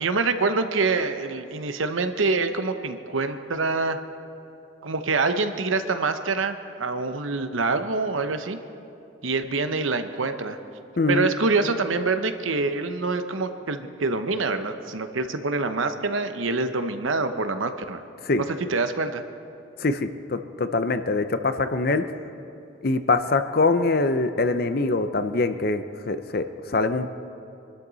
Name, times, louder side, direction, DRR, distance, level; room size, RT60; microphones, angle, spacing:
voice 1, 0.0-4.0 4.8-8.6 9.2-10.6 11.1-18.0 18.7-19.2, right 3 dB, 80° right, 8 dB, 0.9 m, -25 dB
voice 2, 11.0-11.3 18.2-18.4 19.8-22.0 22.8-27.1, left 3 dB, 50° left, 10 dB, 0.7 m, -24 dB
25.0 x 13.0 x 4.1 m, 2.6 s
head